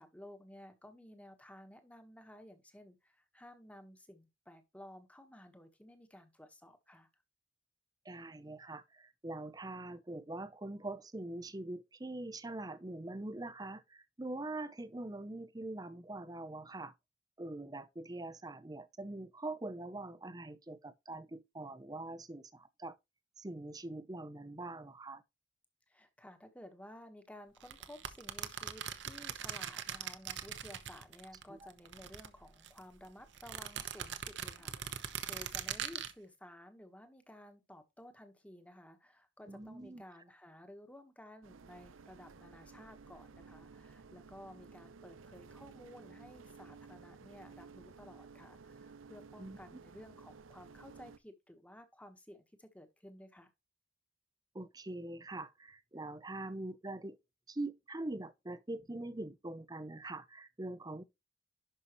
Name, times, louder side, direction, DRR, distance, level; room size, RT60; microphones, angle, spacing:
voice 1, 0.0-7.1 25.9-53.5, left 1 dB, 5° left, 1.3 m, -55 dB
voice 2, 8.0-16.9 17.4-23.0 23.4-25.2 31.5-31.6 39.5-40.0 49.4-49.8 54.5-57.2 57.5-61.0, right 2 dB, 20° right, 0.6 m, -43 dB
sound 1, 27.6-31.4 31.7-32.8 33.3-36.1, right 9 dB, 65° right, 1.0 m, -41 dB
sound 2, 41.4-51.2, right 4 dB, 90° right, 0.6 m, -55 dB
11.0 x 5.6 x 3.1 m
head